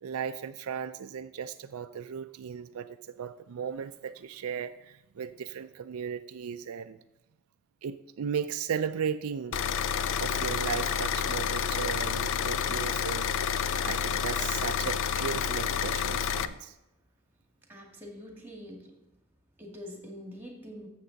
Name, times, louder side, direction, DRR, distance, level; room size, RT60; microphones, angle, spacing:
voice 1, 0.0-7.0 7.8-9.6 10.2-13.5 13.8-16.8, right 7 dB, 70° right, 10 dB, 0.4 m, -36 dB
sound 1, 9.5-16.5, left 8 dB, 60° left, 0.4 m, -29 dB
voice 2, 17.7-18.9 19.6-20.9, equal, 10° right, 1 dB, 2.0 m, -44 dB
12.5 x 7.4 x 4.0 m, 0.97 s
head